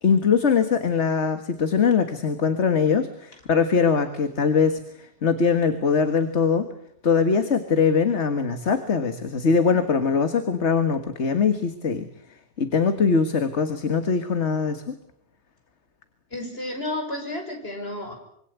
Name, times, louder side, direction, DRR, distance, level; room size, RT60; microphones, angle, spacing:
voice 1, 0.0-6.7 7.0-12.0 12.6-14.9, left 5 dB, 75° left, 8 dB, 2.0 m, -22 dB
voice 2, 16.3-18.1, left 1 dB, 60° left, 3 dB, 6.8 m, -31 dB
26.0 x 24.5 x 8.2 m, 0.71 s
omnidirectional pair, 1.2 m